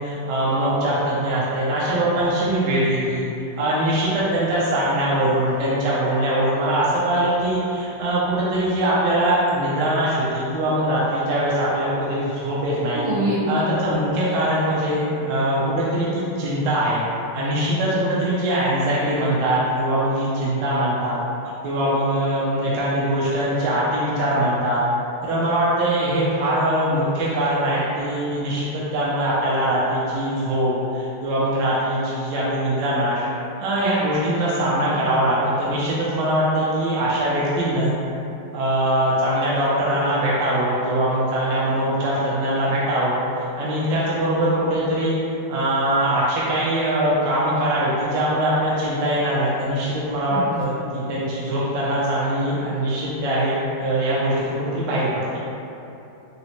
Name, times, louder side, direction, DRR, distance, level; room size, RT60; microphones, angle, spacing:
voice 1, 0.0-3.2 3.6-13.0 13.5-17.0 17.3-21.2 21.6-24.8 25.2-33.2 33.6-37.9 38.5-43.2 43.6-45.2 45.5-55.4, right 1 dB, 75° right, -8 dB, 1.1 m, -22 dB
voice 2, 12.9-14.0 34.9-35.1 35.7-35.8 50.3-50.6, right 1 dB, 90° right, -6 dB, 1.6 m, -26 dB
4.0 x 2.0 x 2.8 m, 2.9 s
omnidirectional pair, 2.2 m